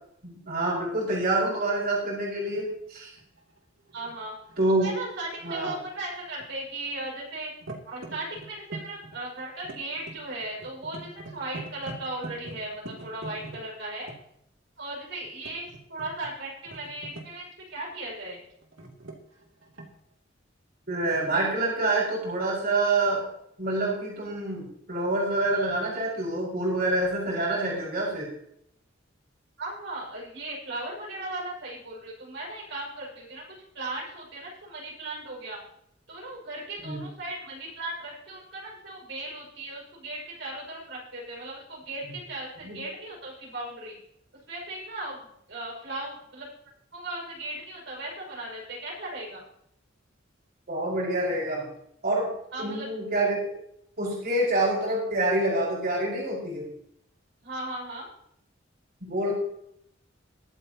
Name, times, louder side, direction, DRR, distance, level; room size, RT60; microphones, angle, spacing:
voice 1, 0.2-3.1 4.6-4.9 5.4-5.7 20.9-23.2 23.6-28.3 36.8-37.0 42.6-42.8 50.7-51.7 52.0-52.3 52.6-53.5 54.0-56.7 59.0-59.3, right 2 dB, 55° right, -5 dB, 5.8 m, -27 dB
sound 1, 2.5-2.7 3.2-5.6 5.9-7.1 7.3-14.2 15.2-16.3 16.7-17.5 18.6-20.1 21.0-21.2, right 2 dB, 85° right, 2.9 m, -43 dB
voice 2, 3.9-4.3 4.8-7.5 7.8-14.1 14.8-18.5 29.6-33.4 33.7-35.6 36.1-44.0 44.5-46.5 46.9-49.4 52.5-52.9 57.4-58.1, right 2 dB, 70° right, -3 dB, 6.2 m, -37 dB
23.0 x 8.8 x 3.0 m, 0.72 s
head